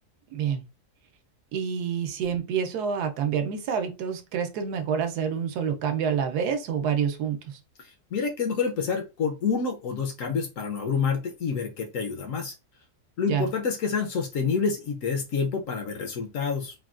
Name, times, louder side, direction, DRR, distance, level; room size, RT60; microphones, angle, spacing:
voice 1, 0.3-0.6 1.5-7.6 13.3-13.5, right 7 dB, 80° right, 1.1 m, -27 dB
voice 2, 7.8-12.5 13.2-16.7, left 5 dB, 65° left, 0.8 m, -28 dB
3.4 x 2.2 x 2.4 m
omnidirectional pair, 1.7 m